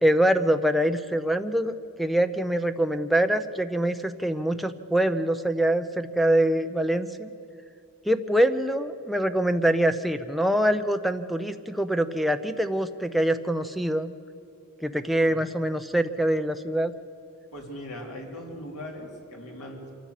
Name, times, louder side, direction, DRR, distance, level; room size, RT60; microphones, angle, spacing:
voice 1, 0.0-7.3 8.0-14.1 14.8-16.9, right 1 dB, ahead, 6 dB, 0.7 m, -24 dB
voice 2, 17.5-20.0, left 1 dB, 85° left, 0 dB, 3.9 m, -39 dB
25.5 x 14.5 x 8.3 m, 2.6 s
head